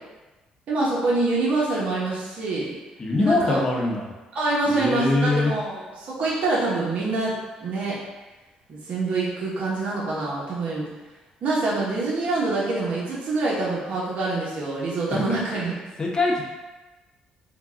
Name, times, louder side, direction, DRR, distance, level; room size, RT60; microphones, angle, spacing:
voice 1, 0.7-2.8 3.2-3.6 4.3-7.3 7.6-8.0 8.7-10.9 11.4-15.8, right 2 dB, 65° right, -5 dB, 0.9 m, -25 dB
voice 2, 3.0-4.1 4.7-5.5 15.1-15.2 16.0-16.4, left 2 dB, 30° left, -2 dB, 0.9 m, -23 dB
3.8 x 2.2 x 3.6 m, 1.1 s
cardioid pair, 85°, 2 cm